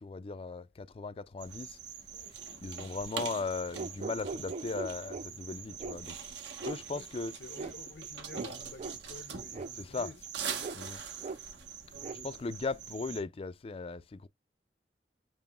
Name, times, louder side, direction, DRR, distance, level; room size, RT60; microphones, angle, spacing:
voice 1, 0.0-1.8 2.6-6.2 6.6-7.4 9.8-10.2 10.7-11.0 12.1-14.3, left 4 dB, 35° left, 0.4 m, -38 dB
sound 1, 1.4-13.2, right 6 dB, 80° right, 1.2 m, -43 dB
sound 2, 3.7-5.3 5.8-6.0 6.6-6.8 7.6-7.7 8.3-8.5 8.8-9.0 9.5-9.7 10.6-10.8 11.2-11.4 12.0-12.1, right 4 dB, 40° right, 0.3 m, -39 dB
voice 2, 7.3-10.3 10.5-10.8 11.9-12.0, left 3 dB, 80° left, 0.8 m, -50 dB
6.9 x 3.0 x 2.3 m
head